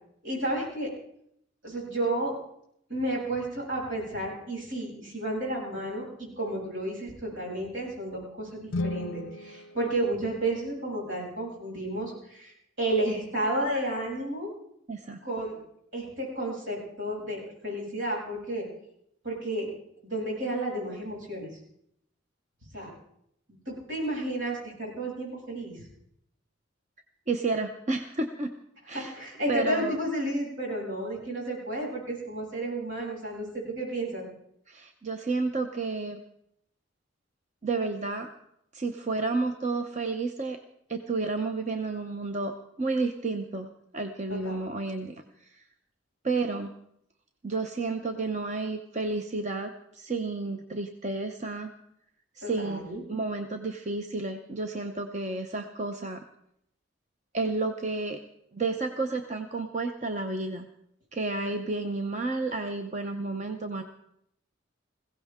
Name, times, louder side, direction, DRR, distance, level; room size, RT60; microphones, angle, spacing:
voice 1, 0.2-0.9 1.6-2.3 2.9-12.5 12.8-14.5 15.2-15.6 15.9-18.6 19.2-19.7 20.0-21.5 22.7-22.9 23.7-25.8 28.9-34.2 44.4-44.6 52.4-53.0, right 1 dB, 75° right, -3 dB, 7.8 m, -32 dB
sound 1, 8.6-10.9, left 2 dB, 70° left, 0.5 m, -36 dB
voice 2, 14.9-15.2 27.3-28.5 28.9-29.1 29.5-30.0 34.7-36.2 37.6-38.3 38.7-40.6 40.9-42.5 42.8-43.7 43.9-45.6 46.2-46.7 47.4-51.7 52.3-52.8 53.1-56.2 57.3-58.2 58.5-60.7 61.1-63.8, right 3 dB, 35° right, 5 dB, 0.8 m, -31 dB
20.5 x 16.5 x 3.7 m, 0.75 s
head